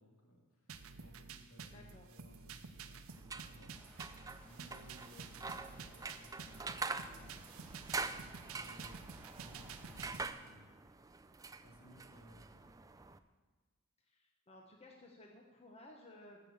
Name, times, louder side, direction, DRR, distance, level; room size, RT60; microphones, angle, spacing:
voice 1, 0.0-11.3 11.6-12.8, equal, 65° left, 0 dB, 2.6 m, -61 dB
sound 1, 0.7-10.3, right 5 dB, 65° right, 0.7 m, -51 dB
voice 2, 1.7-2.1 14.0-16.4, left 1 dB, 30° left, 0 dB, 1.1 m, -57 dB
sound 2, 3.1-13.2, right 4 dB, 15° right, 0.4 m, -45 dB
sound 3, 3.7-10.1, equal, 5° left, 1.8 m, -60 dB
14.0 x 6.9 x 7.2 m, 1.3 s
head